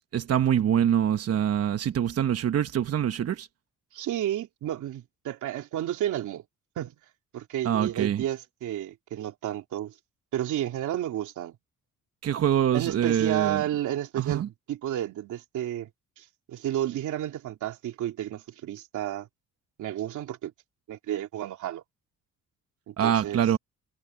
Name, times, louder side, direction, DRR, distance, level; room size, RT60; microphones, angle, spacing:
voice 1, 0.1-3.5 7.6-8.2 12.2-13.6 14.2-14.5 23.0-23.6, right 9 dB, 55° right, 1.0 m, -24 dB
voice 2, 3.9-6.4 6.8-6.9 7.3-9.9 10.3-11.6 12.7-15.9 16.2-19.3 19.8-20.5 20.9-21.8 22.9-23.4, right 12 dB, 80° right, 2.9 m, -31 dB
cardioid pair, 90°, 30 cm